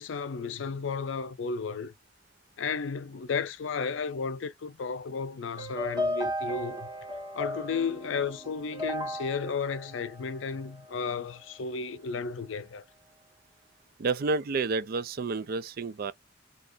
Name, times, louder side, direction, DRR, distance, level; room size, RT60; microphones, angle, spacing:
voice 1, 0.0-1.9 2.6-6.9 7.3-12.8, left 5 dB, 70° left, 0.5 m, -33 dB
sound 1, 5.6-10.9, left 1 dB, 20° right, 1.2 m, -35 dB
voice 2, 14.0-16.1, right 4 dB, 50° right, 0.4 m, -30 dB
2.8 x 2.5 x 3.7 m
head